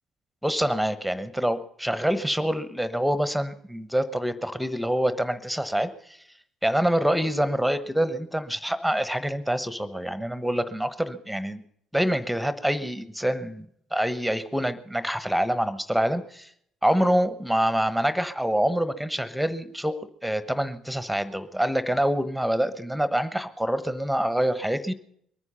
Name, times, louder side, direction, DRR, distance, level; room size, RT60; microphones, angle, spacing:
voice 1, 0.4-5.9 6.6-11.6 11.9-16.5 16.8-24.9, equal, ahead, 13 dB, 1.2 m, -26 dB
22.5 x 9.7 x 5.6 m, 0.68 s
figure-of-eight pair, 50°, 0 cm